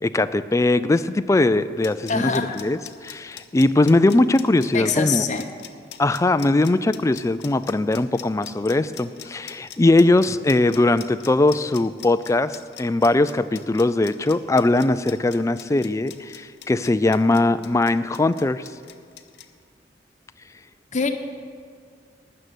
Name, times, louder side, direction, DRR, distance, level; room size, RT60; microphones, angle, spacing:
voice 1, 0.0-5.2 6.0-18.7, left 2 dB, 15° left, 12 dB, 0.3 m, -20 dB
sound 1, 1.6-19.5, left 11 dB, 65° left, 0.8 m, -42 dB
voice 2, 2.1-2.6 4.7-5.5 20.9-21.1, left 5 dB, 40° left, 6 dB, 0.9 m, -24 dB
13.0 x 6.6 x 9.1 m, 2.1 s
head